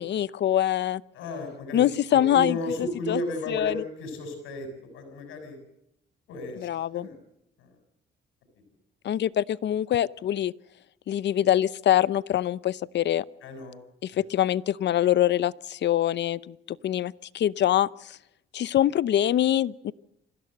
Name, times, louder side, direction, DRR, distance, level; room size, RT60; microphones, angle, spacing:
voice 1, 0.0-1.0 1.7-2.6 3.1-3.2 3.5-3.7 6.6-7.1 9.0-10.5 11.1-13.2 14.0-16.5 16.8-18.2 18.5-19.9, left 11 dB, 60° left, 19 dB, 0.7 m, -24 dB
voice 2, 1.1-5.6 6.3-7.2 7.6-7.8 13.4-13.8 14.1-14.2, left 1 dB, 90° left, 6 dB, 7.1 m, -34 dB
25.0 x 16.0 x 7.8 m, 0.83 s
cardioid pair, 90°, 20 cm